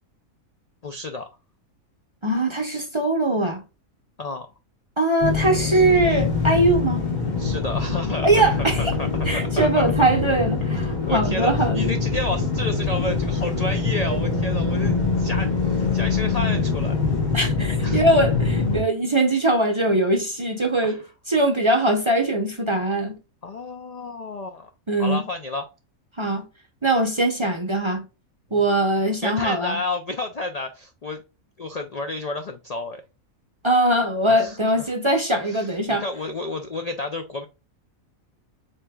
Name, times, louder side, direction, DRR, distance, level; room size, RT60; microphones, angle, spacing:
voice 1, 0.8-1.3 4.2-4.5 7.4-9.9 11.1-17.0 17.8-18.0 20.8-21.0 23.4-24.7 25.0-25.6 28.5-28.7 29.2-31.2 31.6-33.0 34.3-34.9 35.4-37.5, left 2 dB, 65° left, 0.3 m, -31 dB
voice 2, 2.2-3.6 5.0-7.0 8.2-8.9 9.3-12.0 14.1-14.2 17.3-21.0 21.3-23.2 24.9-25.2 26.2-26.5 26.8-28.1 28.5-29.8 33.6-36.0, right 1 dB, 30° right, 0.6 m, -21 dB
sound 1, 5.2-18.8, left 4 dB, 35° left, 1.5 m, -24 dB
7.5 x 2.8 x 2.3 m
omnidirectional pair, 1.4 m